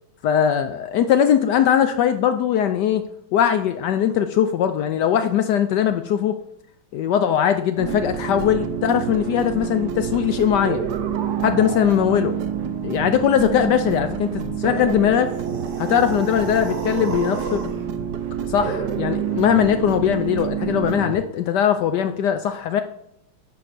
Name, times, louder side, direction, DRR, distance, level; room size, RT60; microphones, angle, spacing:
voice 1, 0.2-3.0 3.3-6.3 6.9-10.9 11.4-12.3 12.8-15.3 15.8-17.6 18.5-22.8, left 9 dB, 80° left, 9 dB, 0.9 m, -20 dB
sound 1, 7.8-21.1, right 8 dB, 65° right, 1.1 m, -27 dB
sound 2, 15.2-17.8, right 3 dB, 45° right, 1.3 m, -32 dB
9.9 x 3.9 x 5.9 m, 0.78 s
omnidirectional pair, 2.3 m